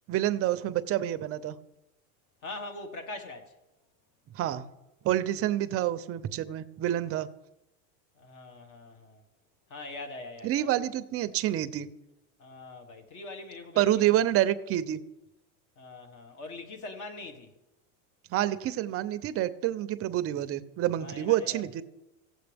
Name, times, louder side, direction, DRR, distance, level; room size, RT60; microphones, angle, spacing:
voice 1, 0.1-1.6 4.3-4.6 5.0-7.3 10.4-11.9 13.8-15.0 18.3-21.8, right 13 dB, 35° right, 0.6 m, -28 dB
voice 2, 2.4-3.6 8.2-9.2 9.7-10.7 12.4-14.2 15.8-17.5 21.0-21.6, left 2 dB, 45° left, 1.7 m, -42 dB
16.0 x 7.6 x 3.5 m
supercardioid pair, 125°, 42 cm